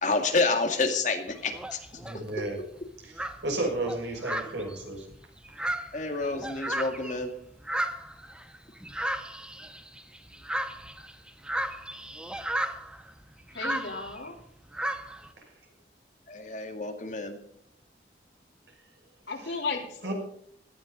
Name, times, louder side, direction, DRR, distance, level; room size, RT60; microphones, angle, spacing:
voice 1, 0.0-1.8 5.9-7.3 16.3-17.4, left 3 dB, 45° left, 4 dB, 2.2 m, -28 dB
sound 1, 1.3-2.2 2.8-2.9 3.2-7.3 7.6-14.3 14.7-15.3, right 1 dB, 5° right, 0.8 m, -34 dB
voice 2, 2.0-2.6 3.0-5.1 20.0-20.1, right 2 dB, 90° right, 1 dB, 6.0 m, -32 dB
voice 3, 13.5-14.3 19.3-20.1, left 4 dB, 80° left, 0 dB, 3.6 m, -34 dB
17.5 x 13.5 x 4.0 m, 0.67 s
head